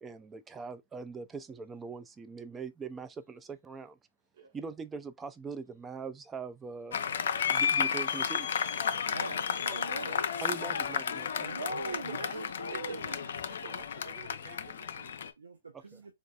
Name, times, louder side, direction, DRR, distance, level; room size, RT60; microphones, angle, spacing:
voice 1, 0.0-4.0 4.5-7.0 7.5-8.6 10.4-11.5 15.7-16.0, right 5 dB, 15° right, 0.4 m, -42 dB
Applause, 6.9-15.3, left 7 dB, 65° left, 0.6 m, -32 dB
voice 2, 8.9-10.2 11.4-13.2 15.4-16.1, right 2 dB, 85° right, 0.7 m, -41 dB
voice 3, 9.5-10.1 11.6-15.3, right 6 dB, 60° right, 1.2 m, -49 dB
3.9 x 2.4 x 2.4 m
hypercardioid pair, 130°, 0 cm